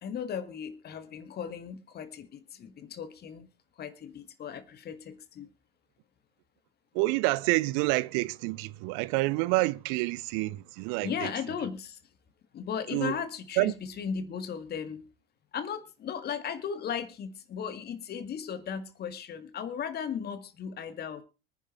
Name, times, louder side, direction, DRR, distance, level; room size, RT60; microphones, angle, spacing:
voice 1, 0.0-3.5 3.8-5.5 11.0-12.0 12.5-15.1 15.5-21.2, left 7 dB, 30° left, 1.8 m, -36 dB
voice 2, 6.9-11.3 12.9-13.2 13.6-13.7, right 21 dB, 45° right, 0.7 m, -28 dB
24.5 x 10.0 x 3.1 m
figure-of-eight pair, 70°, 31 cm